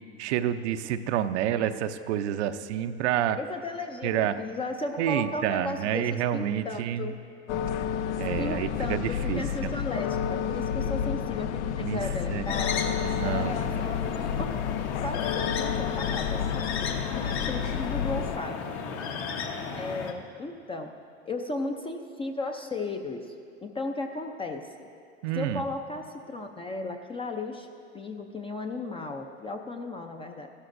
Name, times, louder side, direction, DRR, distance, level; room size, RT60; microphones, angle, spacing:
voice 1, 0.2-3.4 4.0-4.4 5.0-7.1 8.2-9.7 11.8-12.0 12.3-12.5 12.9-13.6 25.2-25.6, right 10 dB, 70° right, 9 dB, 0.6 m, -29 dB
voice 2, 3.4-7.1 8.4-12.8 13.2-14.5 15.0-18.6 19.7-20.9 21.3-23.3 23.6-24.9 25.3-27.7 27.9-30.5, left 2 dB, 15° left, 4 dB, 0.4 m, -35 dB
sound 1, 7.5-18.4, left 8 dB, 75° left, 0.6 m, -30 dB
sound 2, 12.5-20.1, left 5 dB, 50° left, 1.1 m, -34 dB
15.5 x 12.5 x 2.6 m, 2.5 s
hypercardioid pair, 110°, 35 cm